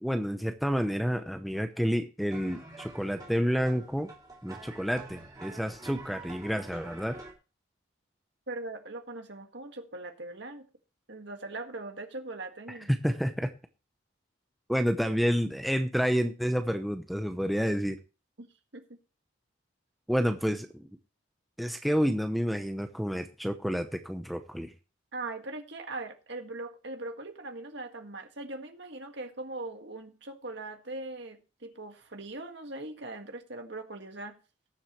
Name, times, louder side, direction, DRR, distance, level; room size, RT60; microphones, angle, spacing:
voice 1, 0.0-4.1 4.4-7.2 12.9-13.5 14.7-18.0 20.1-20.9 21.6-24.7, equal, ahead, 0.7 m, -29 dB
sound 1, 2.3-7.3, right 3 dB, 20° right, 2.8 m, -47 dB
voice 2, 8.5-10.6 11.1-12.9 18.4-18.5 18.7-18.8 25.1-34.4, right 2 dB, 55° right, 1.8 m, -40 dB
19.0 x 7.4 x 3.1 m
head